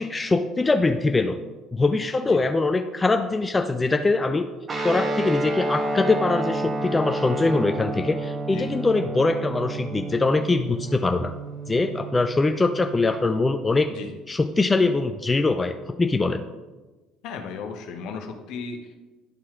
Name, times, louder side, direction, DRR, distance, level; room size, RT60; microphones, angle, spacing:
voice 1, 0.0-1.4 1.7-4.5 4.8-11.3 11.7-13.9 14.3-16.4, left 3 dB, 20° left, 7 dB, 0.4 m, -22 dB
Guitar, 4.7-13.2, right 2 dB, 35° right, 1.1 m, -30 dB
voice 2, 13.9-14.2 17.2-19.0, left 5 dB, 60° left, 5 dB, 0.9 m, -36 dB
11.0 x 4.4 x 3.6 m, 1.2 s
hypercardioid pair, 60°, 0 cm